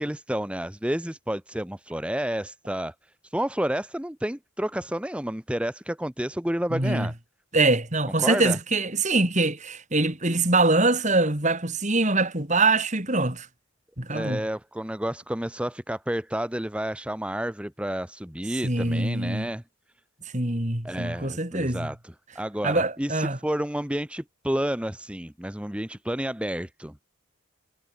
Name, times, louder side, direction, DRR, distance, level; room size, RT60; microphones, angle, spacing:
voice 1, 0.0-2.9 3.2-7.1 8.2-8.6 14.1-19.6 20.8-26.9, right 1 dB, 5° right, 0.9 m, -30 dB
voice 2, 6.7-7.1 7.5-13.5 14.0-14.4 18.6-19.5 20.3-21.9 22.6-23.4, right 2 dB, 35° right, 3.9 m, -24 dB
head